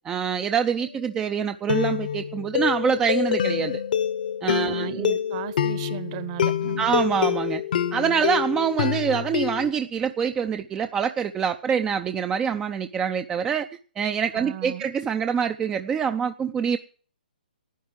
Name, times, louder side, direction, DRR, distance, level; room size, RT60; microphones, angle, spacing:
voice 1, 0.0-3.8 4.4-5.2 6.8-7.6 7.9-13.7 14.0-16.8, right 7 dB, 15° right, 0.5 m, -25 dB
sound 1, 0.8-1.1 1.7-9.7, left 9 dB, 60° left, 1.2 m, -26 dB
voice 2, 4.6-6.9 14.3-14.9, right 11 dB, 35° right, 1.1 m, -35 dB
12.0 x 9.4 x 7.5 m
hypercardioid pair, 150°, 5 cm